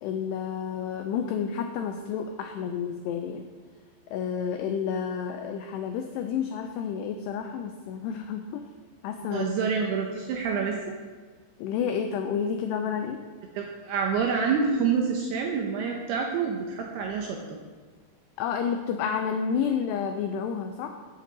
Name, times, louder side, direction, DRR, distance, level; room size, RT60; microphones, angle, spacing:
voice 1, 0.0-3.5 4.1-8.6 9.0-9.5 11.6-13.2 18.4-21.0, left 7 dB, 90° left, 5 dB, 2.4 m, -30 dB
voice 2, 9.3-11.0 13.5-17.6, right 5 dB, 80° right, 1 dB, 2.3 m, -27 dB
16.0 x 6.6 x 3.9 m, 1.4 s
omnidirectional pair, 5.5 m